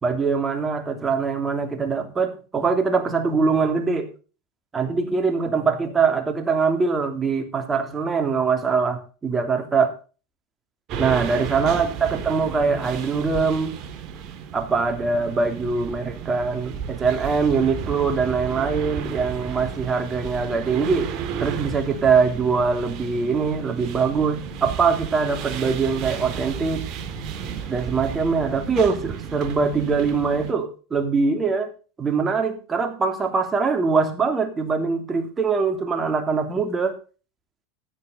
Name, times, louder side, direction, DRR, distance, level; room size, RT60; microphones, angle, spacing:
voice 1, 0.0-4.1 4.7-9.9 11.0-13.7 14.5-21.1 21.4-26.9 27.7-31.7 32.0-37.0, right 5 dB, 20° right, 6 dB, 3.0 m, -23 dB
sound 1, 10.9-30.5, right 7 dB, 50° right, 2.6 m, -33 dB
14.0 x 9.6 x 4.0 m, 0.35 s
hypercardioid pair, 105°, 0 cm